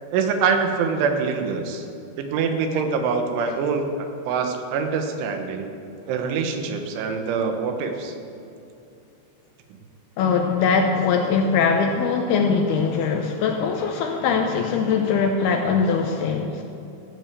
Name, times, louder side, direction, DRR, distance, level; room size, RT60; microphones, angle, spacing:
voice 1, 0.1-1.9 2.2-3.8 4.3-5.7 6.1-8.2, right 5 dB, 85° right, 5 dB, 3.7 m, -24 dB
voice 2, 10.2-16.6, left 5 dB, 80° left, 4 dB, 2.3 m, -21 dB
15.5 x 7.9 x 8.3 m, 2.7 s
omnidirectional pair, 5.3 m